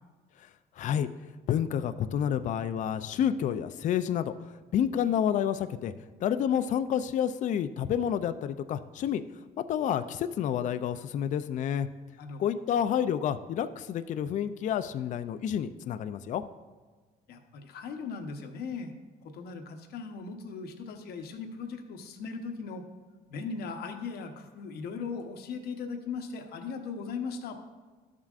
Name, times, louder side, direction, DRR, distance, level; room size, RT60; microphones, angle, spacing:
voice 1, 0.8-1.1 1.5-5.9 6.2-9.2 9.7-11.9 12.4-16.4, left 9 dB, 50° left, 11 dB, 0.4 m, -29 dB
voice 2, 12.2-12.5 17.3-18.9 19.2-22.8 23.3-27.6, left 5 dB, 70° left, 5 dB, 0.9 m, -38 dB
12.0 x 7.4 x 2.4 m, 1.4 s
cardioid pair, 110°, 17 cm